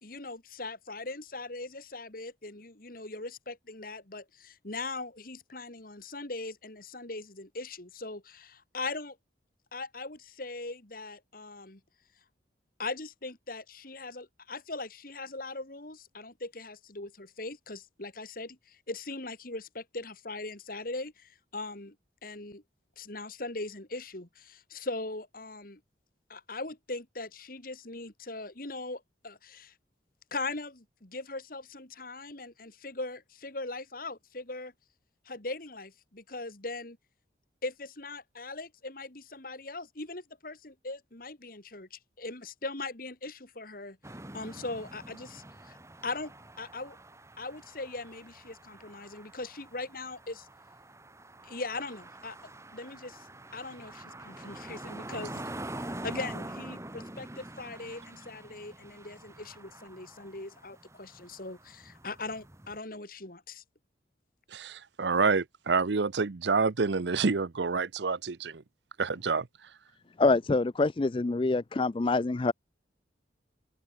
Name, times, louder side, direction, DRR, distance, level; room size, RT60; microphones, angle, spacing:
voice 1, 0.0-9.2 9.7-11.8 12.8-21.9 22.2-22.6 23.0-25.8 26.3-29.7 30.3-34.7 35.2-37.0 37.6-44.0 44.3-45.8 46.0-47.0 47.4-50.5 51.4-52.4 52.7-53.3 53.5-63.6, left 3 dB, 50° left, 2.7 m, -40 dB
sound 1, 44.0-62.8, right 1 dB, 15° right, 2.3 m, -45 dB
voice 2, 64.5-68.6 69.0-69.5, right 4 dB, 70° right, 0.7 m, -28 dB
voice 3, 70.2-72.5, left 3 dB, 30° left, 0.4 m, -26 dB
head